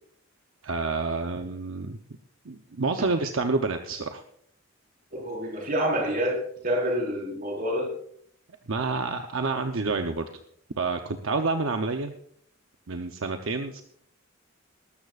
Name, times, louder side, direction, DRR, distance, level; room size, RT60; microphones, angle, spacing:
voice 1, 0.6-2.0 2.4-4.2 8.7-10.3 10.8-12.1 12.9-13.8, right 3 dB, 75° right, 6 dB, 0.8 m, -28 dB
voice 2, 5.1-7.9, equal, 45° right, 0 dB, 4.8 m, -27 dB
20.0 x 13.0 x 2.5 m, 0.63 s
head